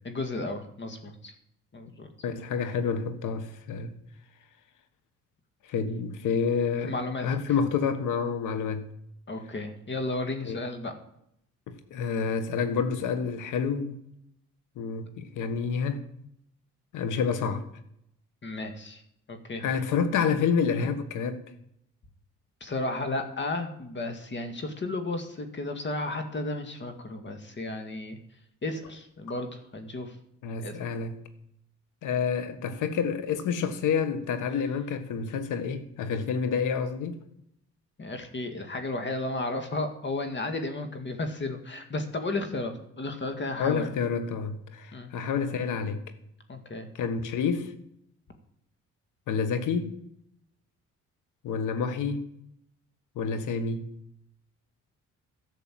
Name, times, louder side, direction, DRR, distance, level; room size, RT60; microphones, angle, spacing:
voice 1, 0.0-1.3 1.7-2.1 6.9-7.3 9.3-10.9 18.4-19.0 19.3-19.6 22.6-28.2 28.6-30.1 30.6-30.8 38.0-43.9 44.9-45.1 46.5-46.9, left 2 dB, 40° left, 2.1 m, -33 dB
voice 2, 2.2-3.9 5.6-8.9 10.4-10.6 11.7-14.0 14.7-16.0 16.9-17.6 19.6-21.4 30.4-31.2 32.0-37.2 43.6-46.0 46.9-47.7 49.3-50.0 51.4-52.3 53.1-53.9, left 6 dB, 85° left, 1.5 m, -28 dB
12.0 x 6.8 x 7.5 m
cardioid pair, 90°, 30 cm